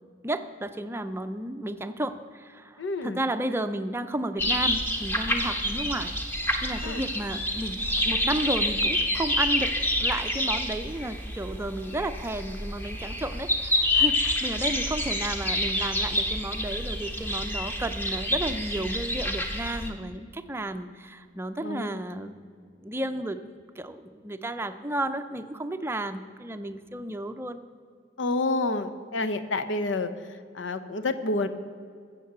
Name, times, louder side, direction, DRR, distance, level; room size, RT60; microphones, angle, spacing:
voice 1, 0.2-6.1 6.6-9.7 10.0-22.5 22.8-23.4 23.8-27.6, right 1 dB, 15° right, 9 dB, 0.5 m, -33 dB
voice 2, 2.8-3.2 6.8-7.0 21.6-22.0 28.2-30.1 30.5-31.5, left 2 dB, 85° left, 11 dB, 0.8 m, -28 dB
sound 1, 4.4-19.9, left 1 dB, 10° left, 1.1 m, -28 dB
14.5 x 7.4 x 6.7 m, 2.1 s
head